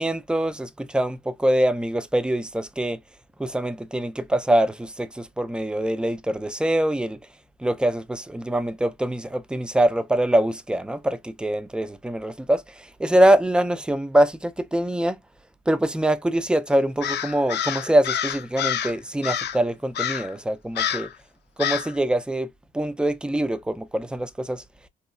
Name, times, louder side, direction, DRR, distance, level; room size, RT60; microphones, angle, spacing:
voice 1, 0.0-3.0 3.4-7.2 7.6-15.2 15.7-21.1 21.6-22.5 22.7-24.6, right 1 dB, 5° right, 0.4 m, -24 dB
Crow, 17.0-18.9 19.2-19.6 19.9-20.3 20.7-21.1 21.6-21.9, left 9 dB, 60° left, 0.5 m, -27 dB
2.9 x 2.3 x 2.3 m
cardioid pair, 90°, 20 cm